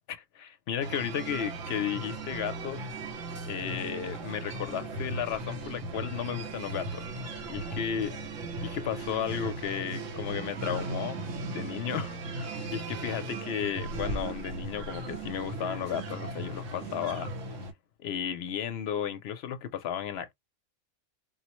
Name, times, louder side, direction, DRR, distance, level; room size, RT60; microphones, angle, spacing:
voice 1, 0.1-2.8 3.4-8.1 8.6-11.2 11.5-17.6 18.0-20.3, left 9 dB, 65° left, 0.7 m, -34 dB
sound 1, 0.8-17.7, right 2 dB, 85° right, 1.2 m, -37 dB
4.2 x 2.0 x 2.9 m
omnidirectional pair, 1.3 m